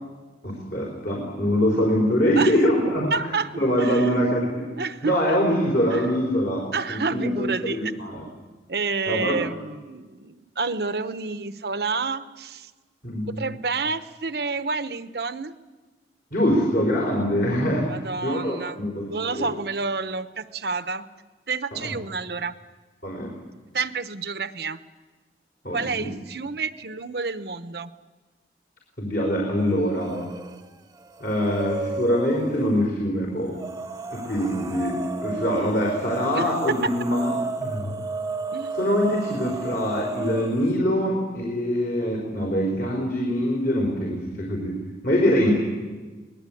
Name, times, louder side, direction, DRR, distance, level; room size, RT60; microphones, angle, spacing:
voice 1, 0.4-4.7 5.0-8.2 9.1-9.4 13.0-13.5 16.3-17.9 18.2-19.5 21.7-21.9 23.0-23.3 25.6-26.1 29.0-30.2 31.2-33.6 34.1-37.3 37.6-37.9 38.7-44.8 45.0-45.5, equal, 55° left, -2 dB, 4.4 m, -24 dB
voice 2, 3.1-3.5 3.8-4.2 4.8-5.1 5.9-6.1 6.7-7.8 8.7-12.7 13.4-15.5 17.9-21.1 21.5-22.5 23.7-24.8 25.7-27.9 36.3-36.9 38.5-38.7, right 4 dB, 65° right, 12 dB, 1.0 m, -29 dB
sound 1, 30.0-30.6 30.9-32.8 33.5-40.7, right 3 dB, 20° right, 1.0 m, -33 dB
24.5 x 19.5 x 8.6 m, 1.3 s
head